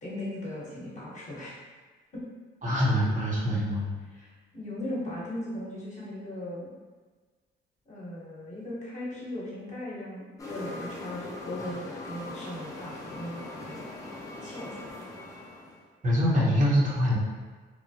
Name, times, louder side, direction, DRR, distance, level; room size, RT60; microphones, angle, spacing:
voice 1, 0.0-1.6 2.1-2.2 4.0-6.7 7.9-13.9 14.4-15.1, left 1 dB, 35° left, -7 dB, 1.0 m, -38 dB
voice 2, 2.6-3.9 16.0-17.2, equal, 40° right, -6 dB, 0.8 m, -24 dB
sound 1, 10.4-15.9, left 2 dB, 15° left, 0.6 m, -41 dB
3.0 x 2.1 x 2.7 m, 1.4 s
cardioid pair, 90°, 20 cm